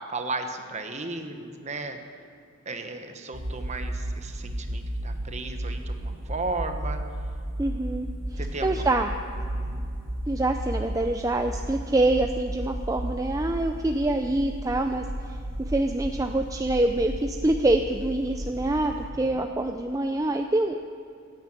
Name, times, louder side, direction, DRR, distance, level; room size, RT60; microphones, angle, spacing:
voice 1, 0.1-2.0 2.6-7.0 8.4-8.8 9.5-9.8 19.3-19.4, right 3 dB, 35° right, 6 dB, 1.2 m, -35 dB
sound 1, 3.3-19.1, right 1 dB, 80° right, 3.7 m, -34 dB
voice 2, 7.6-9.1 10.3-15.4 15.7-20.8, right 2 dB, 15° right, 5 dB, 0.5 m, -26 dB
15.5 x 9.4 x 8.9 m, 2.3 s
head